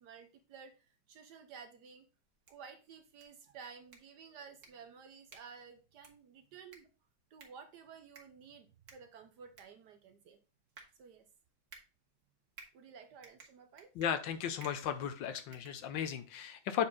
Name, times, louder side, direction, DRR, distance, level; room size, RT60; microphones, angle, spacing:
voice 1, 0.0-2.1 2.5-6.9 7.3-10.4 11.0-11.2 12.7-13.9, right 6 dB, 65° right, 7 dB, 1.1 m, -53 dB
sound 1, 2.2-16.4, right 4 dB, 45° right, 1.5 m, -60 dB
voice 2, 13.9-16.9, left 8 dB, 70° left, 10 dB, 1.3 m, -35 dB
7.6 x 4.3 x 3.6 m, 0.33 s
omnidirectional pair, 2.2 m